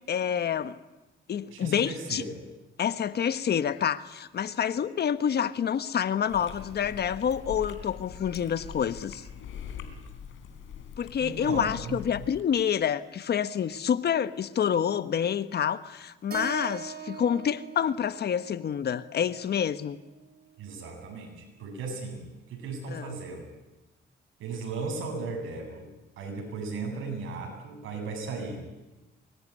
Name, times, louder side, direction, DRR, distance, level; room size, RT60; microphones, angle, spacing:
voice 1, 0.1-0.8 1.3-2.2 2.8-9.2 11.0-20.0 22.9-23.1, left 8 dB, 55° left, 12 dB, 1.3 m, -28 dB
voice 2, 1.5-2.4 11.2-12.0 20.6-23.4 24.4-25.9 26.2-28.6, right 4 dB, 80° right, 3 dB, 8.0 m, -36 dB
Chewing mastication, 6.3-12.4, left 7 dB, 80° left, 3.8 m, -43 dB
Keyboard (musical), 16.3-20.5, right 7 dB, 50° right, 3.2 m, -43 dB
25.0 x 21.0 x 9.8 m, 1.1 s
cardioid pair, 90°, 20 cm